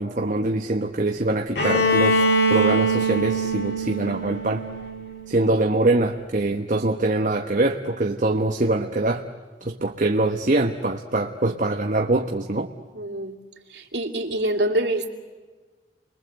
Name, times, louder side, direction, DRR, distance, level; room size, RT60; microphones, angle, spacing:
voice 1, 0.0-4.6 5.3-9.2 9.6-12.7, right 2 dB, 45° right, 4 dB, 1.1 m, -23 dB
Bowed string instrument, 1.5-5.4, right 1 dB, 65° left, 3.3 m, -23 dB
voice 2, 12.9-13.4 13.7-15.1, right 1 dB, 70° right, 3 dB, 2.8 m, -25 dB
29.5 x 22.5 x 7.9 m, 1.4 s
head